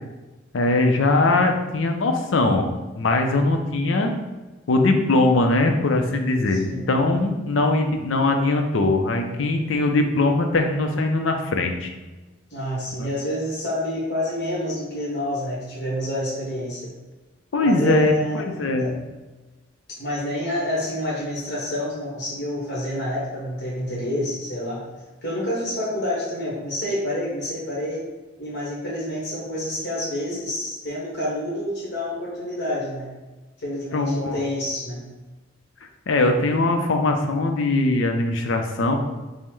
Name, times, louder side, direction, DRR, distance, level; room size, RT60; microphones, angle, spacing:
voice 1, 0.5-4.1 4.7-11.9 13.0-13.1 17.5-18.9 33.9-34.4 36.1-39.0, left 2 dB, 80° left, 4 dB, 0.5 m, -21 dB
voice 2, 12.5-16.9 17.6-18.9 20.0-24.8 25.2-28.0 28.4-33.1 33.6-35.0, equal, 60° left, -6 dB, 1.2 m, -28 dB
5.4 x 2.1 x 3.1 m, 1.2 s
head